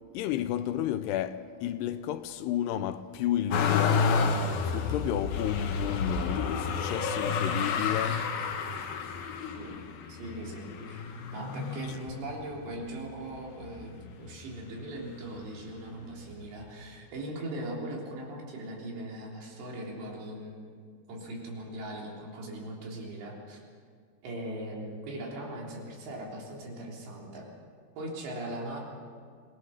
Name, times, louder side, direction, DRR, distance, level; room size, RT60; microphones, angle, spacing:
voice 1, 0.1-8.3, left 12 dB, 80° left, 2.5 m, -32 dB
Motor vehicle (road), 3.5-12.6 13.2-14.0 14.3-15.4 16.4-16.5, left 5 dB, 65° left, 3.1 m, -30 dB
voice 2, 10.1-20.7 21.1-23.6 24.2-27.5 28.0-28.9, right 1 dB, 75° right, 5.7 m, -40 dB
24.5 x 18.0 x 6.4 m
omnidirectional pair, 5.0 m